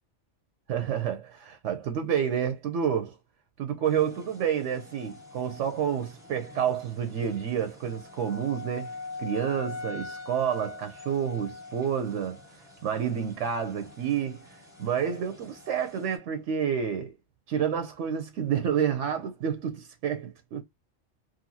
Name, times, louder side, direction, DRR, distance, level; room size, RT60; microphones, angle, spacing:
voice 1, 0.7-3.2 3.6-12.4 12.8-14.4 14.8-17.2 17.5-20.6, right 8 dB, 80° right, 0.9 m, -29 dB
sound 1, 3.8-16.2, left 3 dB, 5° right, 0.8 m, -44 dB
2.8 x 2.5 x 2.6 m
omnidirectional pair, 1.3 m